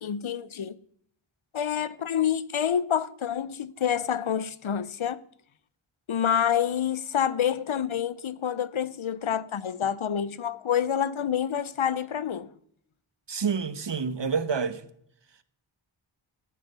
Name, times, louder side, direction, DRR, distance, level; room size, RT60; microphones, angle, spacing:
voice 1, 0.0-0.8 1.5-5.2 6.1-12.5, left 9 dB, 75° left, 0.7 m, -27 dB
voice 2, 13.3-14.8, right 5 dB, 60° right, 1.1 m, -28 dB
14.0 x 10.5 x 5.6 m
wide cardioid pair, 50°, 49 cm